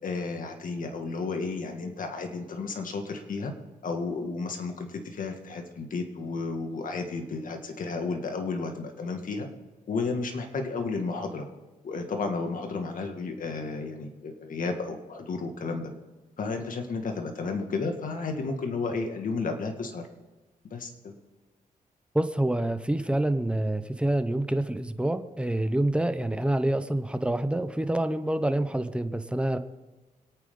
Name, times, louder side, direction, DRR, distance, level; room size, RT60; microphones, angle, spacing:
voice 1, 0.0-3.5 3.8-9.5 9.9-11.5 11.8-15.9 16.4-20.1 20.7-21.2, left 4 dB, 60° left, 4 dB, 2.1 m, -32 dB
voice 2, 22.1-29.6, right 1 dB, 5° right, 9 dB, 0.9 m, -27 dB
25.5 x 9.1 x 3.9 m, 1.2 s
cardioid pair, 95°, 15 cm